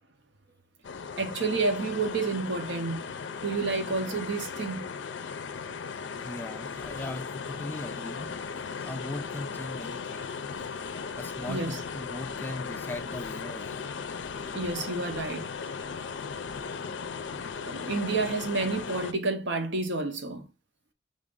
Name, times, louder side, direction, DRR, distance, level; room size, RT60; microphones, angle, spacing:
sound 1, 0.8-19.1, left 5 dB, 75° left, 0.4 m, -37 dB
voice 1, 1.2-3.1 3.4-5.0 11.5-11.8 14.5-15.5 17.6-20.5, right 3 dB, 70° right, 0.8 m, -30 dB
voice 2, 6.2-10.3 11.2-13.8 17.6-17.7, left 1 dB, 10° left, 0.4 m, -39 dB
5.2 x 2.5 x 3.6 m
head